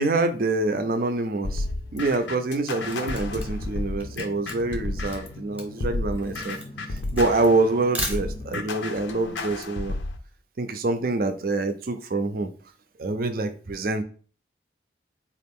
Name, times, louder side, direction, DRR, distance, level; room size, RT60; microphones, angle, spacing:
voice 1, 0.0-1.7 1.9-6.6 6.9-9.9 10.6-12.5 13.0-14.0, right 2 dB, 50° right, 8 dB, 0.4 m, -26 dB
sound 1, 1.4-5.4 5.8-10.2, left 2 dB, 75° left, 0.5 m, -32 dB
Drum, 2.7-8.7, left 2 dB, 25° left, 0.3 m, -44 dB
Camera, 2.9-8.7, right 1 dB, 10° right, 0.8 m, -37 dB
3.9 x 2.5 x 3.5 m, 0.40 s
head